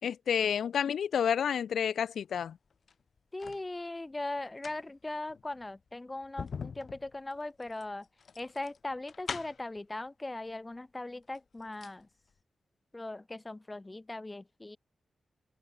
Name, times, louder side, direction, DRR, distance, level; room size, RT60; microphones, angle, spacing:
voice 1, 0.0-2.6, left 8 dB, 80° left, 4.4 m, -30 dB
sound 1, 2.7-3.7 4.4-9.8 10.7-10.8 11.2-12.0 12.3-12.4, left 6 dB, 50° left, 4.2 m, -44 dB
voice 2, 3.3-8.1 8.4-12.1 12.9-14.8, left 2 dB, 15° left, 4.0 m, -39 dB
wide cardioid pair, 170°, 0 cm